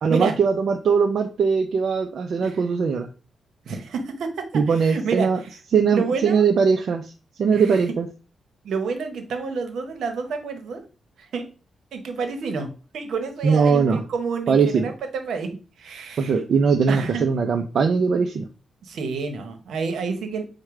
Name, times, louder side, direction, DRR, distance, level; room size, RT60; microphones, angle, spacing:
voice 1, 0.0-3.1 4.5-5.4 5.7-7.1 7.4-8.1 13.4-14.0 14.5-14.9 16.2-18.5, right 5 dB, 65° right, 4 dB, 0.5 m, -20 dB
voice 2, 3.7-5.3 5.9-6.5 7.5-7.8 8.6-10.8 11.2-11.4 11.9-15.5 15.8-16.4 16.9-17.2 18.8-20.4, right 5 dB, 80° right, 6 dB, 1.0 m, -29 dB
4.8 x 2.2 x 4.7 m, 0.34 s
cardioid pair, 90°, 0 cm